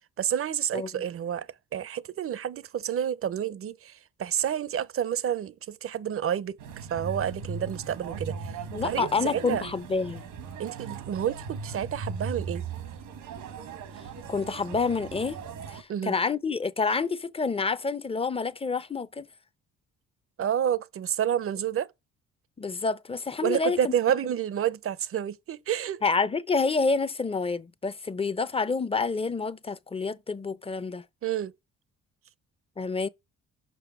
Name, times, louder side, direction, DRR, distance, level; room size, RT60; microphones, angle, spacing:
voice 1, 0.2-8.5 8.8-9.6 10.6-12.6 15.9-16.1 20.4-21.9 23.4-26.0 31.2-31.5, right 9 dB, 45° right, 0.7 m, -29 dB
sound 1, 6.6-15.8, right 5 dB, 90° right, 1.6 m, -38 dB
voice 2, 8.7-10.2 14.3-15.4 15.7-19.3 22.6-23.9 26.0-31.0 32.8-33.1, left 4 dB, 20° left, 0.6 m, -28 dB
6.9 x 5.6 x 5.9 m
cardioid pair, 90°, 30 cm